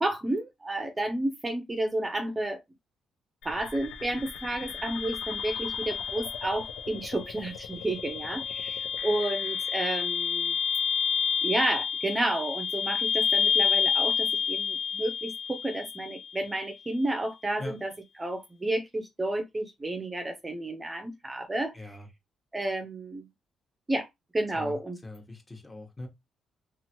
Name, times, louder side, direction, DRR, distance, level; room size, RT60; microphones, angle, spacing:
voice 1, 0.0-2.6 3.4-10.5 11.4-17.9 18.2-22.0 22.5-23.3 23.9-24.1 24.3-25.0, right 1 dB, 20° right, 0.6 m, -31 dB
sound 1, 3.4-16.4, left 7 dB, 85° left, 0.6 m, -30 dB
voice 2, 21.7-22.1 24.5-26.1, left 2 dB, 20° left, 1.1 m, -41 dB
2.9 x 2.5 x 2.9 m
cardioid pair, 90°, 0 cm